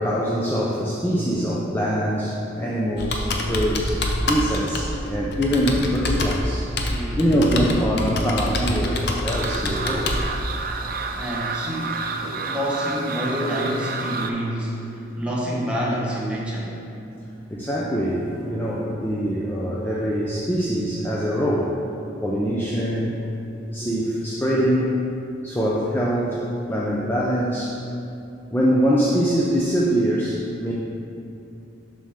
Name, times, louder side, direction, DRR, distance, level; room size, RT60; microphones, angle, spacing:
voice 1, 0.0-6.7 7.2-10.1 11.0-11.2 11.7-11.8 17.5-21.7 22.2-23.2 23.7-24.9 25.4-27.8 28.5-30.7, equal, 10° left, -6 dB, 0.5 m, -23 dB
Computer keyboard, 3.0-10.2, left 1 dB, 60° left, 0.7 m, -26 dB
voice 2, 6.9-7.3 11.1-16.8, equal, 5° right, -5 dB, 1.1 m, -28 dB
sound 1, 9.3-14.3, right 4 dB, 50° right, 0.4 m, -30 dB
7.2 x 6.1 x 3.6 m, 2.7 s
head